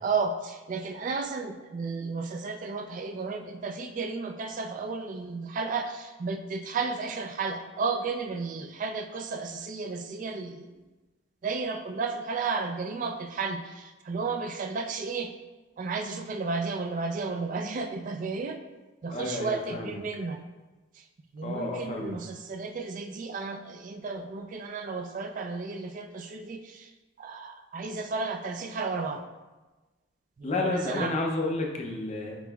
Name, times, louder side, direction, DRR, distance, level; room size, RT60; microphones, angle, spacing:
voice 1, 0.0-10.8 11.4-15.3 15.8-18.6 19.0-20.4 21.3-26.9 27.2-29.2 30.4-31.1, right 4 dB, 40° right, 6 dB, 0.3 m, -33 dB
voice 2, 19.1-19.9 21.4-22.1 30.4-32.4, left 2 dB, 35° left, 1 dB, 0.5 m, -31 dB
7.8 x 3.0 x 2.3 m, 1.2 s
head